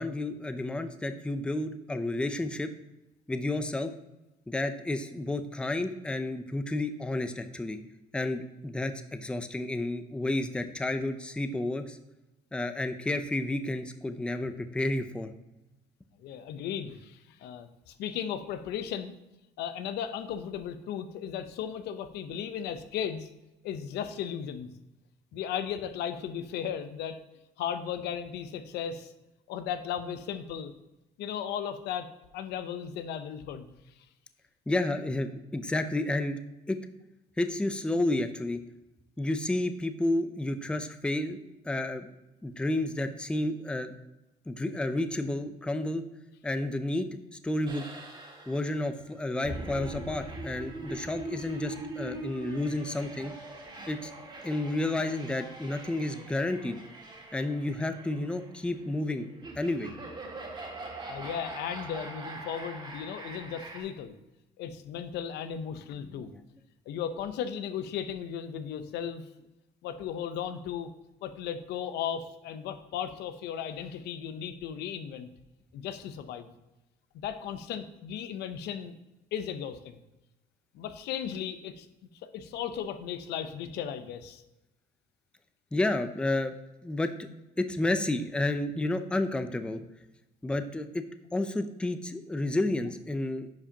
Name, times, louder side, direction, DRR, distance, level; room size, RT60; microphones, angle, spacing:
voice 1, 0.0-2.7 3.3-3.9 4.5-7.8 8.1-12.0 12.5-15.3 34.7-36.4 36.7-36.8 37.4-38.6 39.2-41.4 41.6-42.1 42.4-44.0 44.5-46.0 46.4-47.2 47.4-47.8 48.5-53.3 53.9-54.1 54.4-56.8 57.3-59.3 59.6-59.9 66.0-66.5 85.7-86.5 86.8-87.3 87.6-89.8 90.4-91.0 91.3-93.5, left 2 dB, 5° left, 9 dB, 0.5 m, -31 dB
voice 2, 16.2-19.2 19.6-23.3 23.6-24.7 25.3-27.2 27.6-29.1 29.5-30.7 31.2-33.7 61.1-64.1 64.6-66.3 66.9-69.2 69.8-70.9 71.2-75.3 75.7-76.5 77.2-78.9 79.3-80.0 80.7-81.9 82.2-84.4, left 8 dB, 80° left, 10 dB, 0.6 m, -36 dB
sound 1, 47.7-63.8, right 2 dB, 25° right, 1.9 m, -42 dB
10.5 x 5.0 x 2.8 m, 0.99 s
cardioid pair, 110°, 17 cm